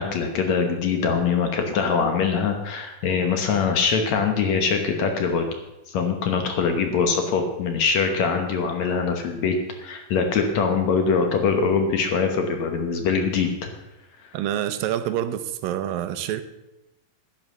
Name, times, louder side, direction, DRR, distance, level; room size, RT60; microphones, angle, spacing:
voice 1, 0.0-5.5 5.9-13.7, left 5 dB, 60° left, 5 dB, 2.1 m, -23 dB
voice 2, 14.3-16.4, right 11 dB, 80° right, 11 dB, 2.4 m, -27 dB
10.5 x 9.7 x 6.5 m, 0.94 s
omnidirectional pair, 4.0 m